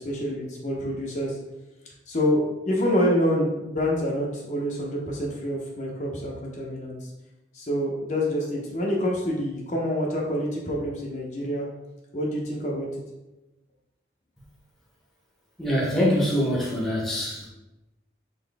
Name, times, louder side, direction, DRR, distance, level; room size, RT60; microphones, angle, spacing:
voice 1, 0.0-1.4 2.1-7.1 7.5-11.7 12.1-12.9, equal, 40° left, -3 dB, 0.7 m, -27 dB
voice 2, 15.6-17.5, equal, ahead, -5 dB, 0.8 m, -24 dB
3.9 x 2.9 x 3.4 m, 1.0 s
head